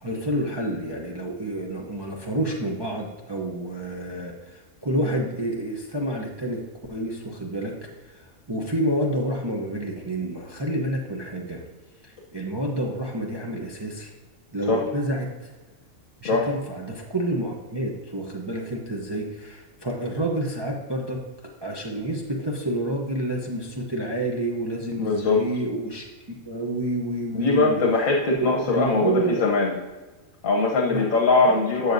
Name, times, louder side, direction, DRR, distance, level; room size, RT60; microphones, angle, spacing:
voice 1, 0.0-6.6 6.9-7.7 8.5-11.6 12.3-14.1 14.5-15.3 16.2-21.2 21.6-26.1 26.5-27.8 28.3-29.5 30.9-31.0 31.5-31.6, right 1 dB, 20° right, -1 dB, 0.8 m, -28 dB
voice 2, 25.0-25.4 27.3-29.7 30.4-31.9, left 3 dB, 75° left, -1 dB, 1.4 m, -21 dB
12.0 x 6.9 x 2.7 m, 1.2 s
omnidirectional pair, 1.4 m